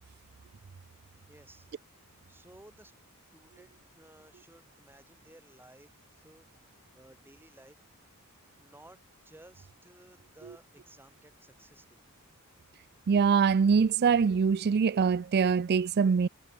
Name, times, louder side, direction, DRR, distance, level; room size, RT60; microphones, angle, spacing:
voice 1, 1.3-1.7 2.1-2.9 3.3-7.8 8.6-12.0, right 1 dB, 10° right, 5.1 m, -57 dB
voice 2, 13.1-16.3, right 6 dB, 45° right, 0.4 m, -24 dB
head